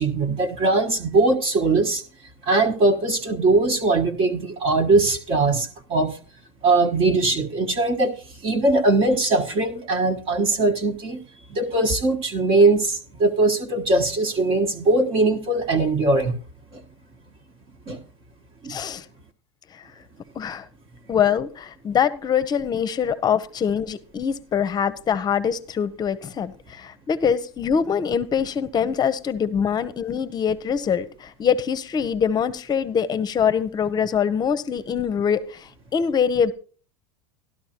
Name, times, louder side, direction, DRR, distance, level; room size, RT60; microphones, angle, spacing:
voice 1, 0.0-2.0 2.4-6.2 6.6-8.1 8.4-11.2 11.5-16.4 17.9-18.0 18.6-18.8, right 2 dB, 40° right, 4 dB, 1.4 m, -20 dB
voice 2, 18.7-19.0 19.7-19.8 20.4-20.7 21.1-36.5, left 7 dB, 30° left, 15 dB, 0.8 m, -24 dB
12.5 x 12.0 x 2.9 m, 0.40 s
hypercardioid pair, 105°, 15 cm